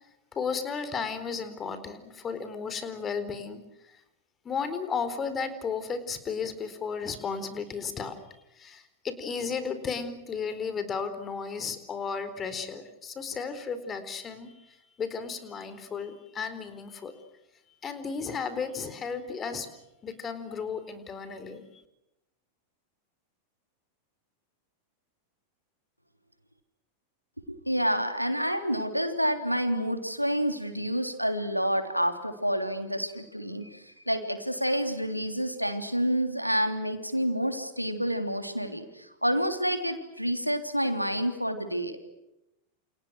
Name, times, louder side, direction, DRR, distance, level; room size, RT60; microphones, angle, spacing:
voice 1, 0.3-4.0 4.4-8.2 8.5-17.1 17.8-19.7 20.0-21.8, left 5 dB, 25° left, 11 dB, 4.2 m, -34 dB
voice 2, 27.5-42.0, equal, 90° right, 7 dB, 3.4 m, -28 dB
29.5 x 29.0 x 6.4 m, 0.91 s
figure-of-eight pair, 90°, 0 cm